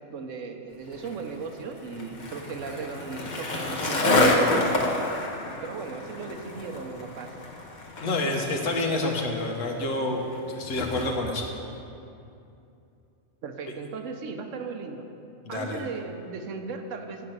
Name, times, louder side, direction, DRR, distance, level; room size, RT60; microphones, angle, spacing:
voice 1, 0.1-5.1 5.6-7.3 13.4-15.1 15.5-17.2, right 5 dB, 75° right, 5 dB, 1.1 m, -37 dB
Skateboard, 0.9-11.5, left 1 dB, 40° left, 0.9 m, -29 dB
voice 2, 8.0-10.3 10.5-11.4 15.4-15.8, left 2 dB, 80° left, 1 dB, 1.5 m, -28 dB
8.0 x 5.9 x 7.9 m, 2.7 s
omnidirectional pair, 1.3 m